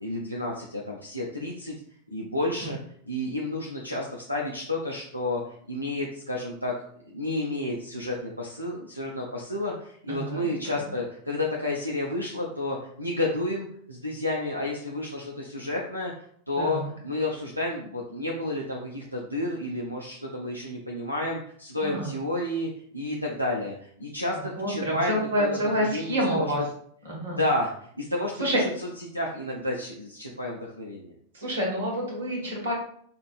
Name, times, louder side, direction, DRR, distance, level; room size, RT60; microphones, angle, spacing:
voice 1, 0.0-1.7 2.1-2.8 3.1-5.4 5.7-6.7 7.1-16.1 16.5-26.5 27.3-28.7 29.1-31.1, left 1 dB, 90° right, -2 dB, 0.5 m, -31 dB
voice 2, 10.1-10.7 16.6-16.9 21.8-22.1 24.6-26.6 27.0-27.4 28.4-28.6 31.3-32.7, equal, 65° right, -1 dB, 1.4 m, -28 dB
5.2 x 2.5 x 2.4 m, 0.62 s
figure-of-eight pair, 90°, 0 cm